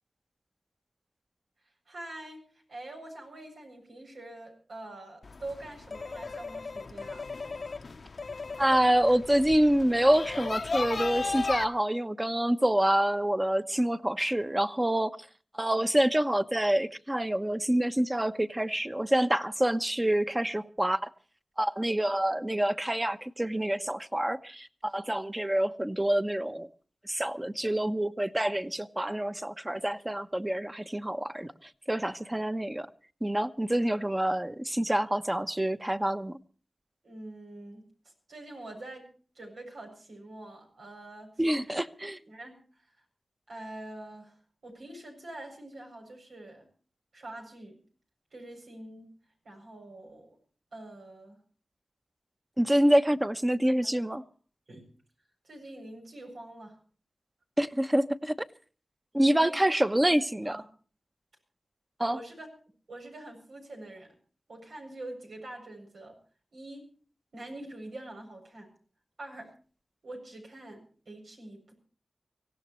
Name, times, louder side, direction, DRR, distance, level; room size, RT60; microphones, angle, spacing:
voice 1, 1.9-7.3 37.0-37.9 38.3-41.9 42.3-42.9 43.5-46.7 47.1-47.8 48.3-49.1 49.4-50.4 50.7-51.4 53.8-54.2 54.7-54.9 55.4-56.8 59.3-59.7 60.0-60.1 60.4-60.7 62.1-62.5 62.9-64.1 64.5-66.2 66.5-66.9 67.3-68.7 69.2-69.5 70.0-71.7, right 1 dB, 85° right, 7.6 m, -45 dB
sound 1, 5.2-11.6, left 4 dB, 60° left, 0.8 m, -36 dB
voice 2, 8.6-15.2 15.5-21.1 21.6-26.7 27.0-31.5 31.9-32.9 33.2-36.4 41.4-42.2 52.6-54.2 57.6-58.3 59.1-60.6 62.0-62.2, right 1 dB, 15° right, 1.1 m, -27 dB
25.0 x 16.5 x 3.1 m
wide cardioid pair, 70°, 0 cm